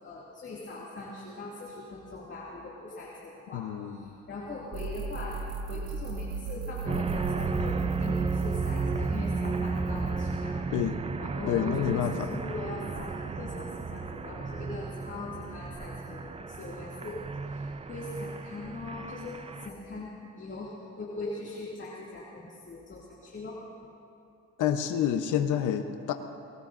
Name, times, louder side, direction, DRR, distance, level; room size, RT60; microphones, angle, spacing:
voice 1, 0.0-5.4 5.7-10.6 11.2-23.7, left 2 dB, 40° left, -5 dB, 2.3 m, -41 dB
voice 2, 3.5-4.1 10.7-11.0 11.5-12.3 24.6-26.1, left 9 dB, 85° left, 7 dB, 0.8 m, -28 dB
sound 1, 4.7-10.3, right 5 dB, 80° right, 1.7 m, -35 dB
sound 2, 6.9-19.7, right 4 dB, 20° right, 0.5 m, -34 dB
23.0 x 18.5 x 2.6 m, 2.6 s
cardioid pair, 90°, 30 cm